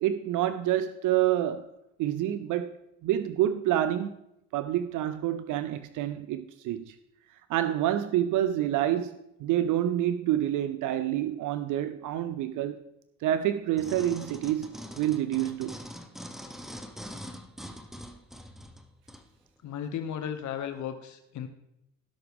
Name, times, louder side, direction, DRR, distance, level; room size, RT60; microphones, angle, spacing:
voice 1, 0.0-1.7 2.0-4.2 4.5-7.0 7.5-12.8 13.2-15.8, right 12 dB, 80° right, 0.5 m, -28 dB
sound 1, 13.8-19.3 19.8-19.9, equal, ahead, 1.0 m, -43 dB
voice 2, 19.6-21.5, left 8 dB, 70° left, 0.8 m, -35 dB
17.0 x 5.9 x 3.5 m
cardioid pair, 90°, 30 cm